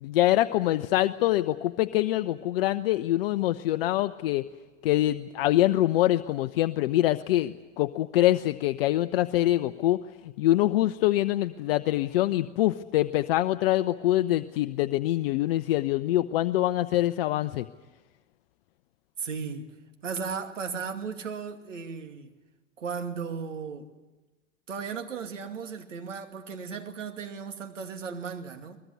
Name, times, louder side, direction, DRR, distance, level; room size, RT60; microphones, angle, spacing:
voice 1, 0.0-4.4 4.8-10.0 10.2-17.7, left 15 dB, 50° left, 0.8 m, -25 dB
voice 2, 19.2-19.7 20.0-22.3 22.8-23.9 24.7-28.8, right 6 dB, 75° right, 2.6 m, -35 dB
23.0 x 20.5 x 9.5 m
hypercardioid pair, 105°, 37 cm